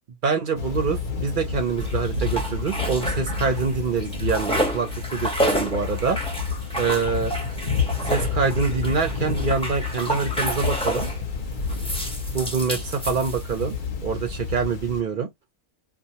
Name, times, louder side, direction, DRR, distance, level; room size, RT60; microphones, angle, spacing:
voice 1, 0.2-6.2 6.8-7.3 8.0-11.1 12.3-13.8 14.0-15.3, right 5 dB, 55° right, 0.6 m, -25 dB
Thunder / Rain, 0.5-15.0, left 5 dB, 55° left, 0.6 m, -30 dB
sound 1, 1.8-3.7 4.0-11.2 11.7-13.7, equal, 5° left, 0.4 m, -30 dB
2.3 x 2.3 x 2.8 m
omnidirectional pair, 1.5 m